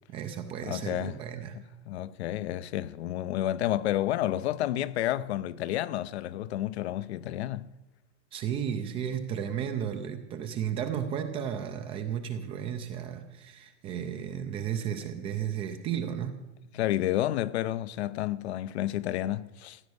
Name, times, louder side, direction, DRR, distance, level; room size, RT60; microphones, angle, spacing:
voice 1, 0.1-1.6 8.3-16.5, right 8 dB, 15° right, 0.5 m, -34 dB
voice 2, 0.7-1.2 1.9-7.7 16.7-19.8, left 13 dB, 55° left, 0.7 m, -30 dB
15.5 x 9.7 x 7.9 m
supercardioid pair, 160°, 39 cm